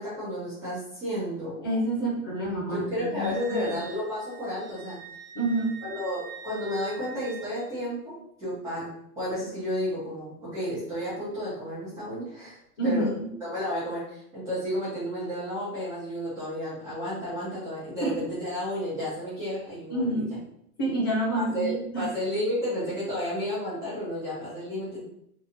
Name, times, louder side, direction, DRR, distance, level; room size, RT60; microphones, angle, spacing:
voice 1, 0.0-1.7 2.6-5.0 5.8-8.9 9.2-12.6 12.8-13.1 13.4-20.3 21.3-25.0, equal, 5° right, -13 dB, 1.2 m, -32 dB
voice 2, 1.6-3.8 5.3-5.8 12.8-13.3 18.0-18.2 19.9-20.4 20.8-22.1, right 1 dB, 15° left, -4 dB, 0.4 m, -28 dB
Wind instrument woodwind instrument, 3.2-7.7, right 7 dB, 80° right, 0.8 m, -45 dB
3.5 x 3.1 x 2.7 m, 0.71 s
hypercardioid pair, 160°, 45 cm